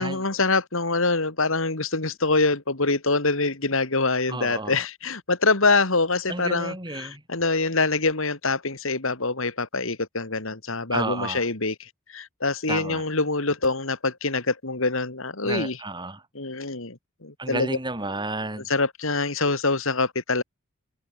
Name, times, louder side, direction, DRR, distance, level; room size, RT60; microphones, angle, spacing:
voice 1, 0.0-15.8 16.3-17.8 18.7-20.4, left 3 dB, 65° left, 2.6 m, -25 dB
voice 2, 4.3-4.8 6.3-7.2 10.9-11.4 12.7-13.0 15.4-16.2 17.4-18.6, right 2 dB, 20° right, 4.7 m, -31 dB
head